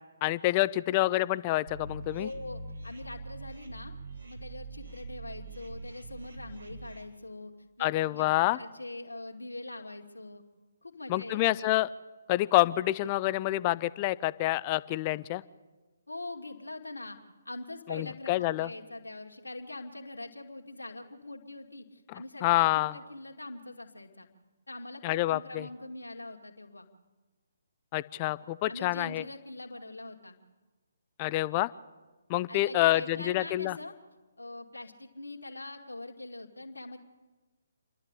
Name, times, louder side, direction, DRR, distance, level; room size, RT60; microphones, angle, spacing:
voice 1, 0.2-2.3 7.8-8.6 11.1-11.9 12.3-15.4 17.9-18.7 22.1-23.0 25.0-25.7 27.9-29.2 31.2-31.7 32.3-33.8, left 17 dB, 30° left, 17 dB, 0.6 m, -27 dB
sound 1, 1.7-7.0, right 2 dB, 80° right, 4.3 m, -43 dB
voice 2, 2.2-4.0 4.2-7.5 7.8-10.4 10.8-11.4 16.1-17.2 17.4-24.3 24.7-26.9 28.7-30.4 32.5-33.9 34.4-37.0, left 2 dB, 85° left, 2 dB, 2.3 m, -43 dB
28.5 x 11.5 x 8.3 m, 1.2 s
figure-of-eight pair, 140°, 0 cm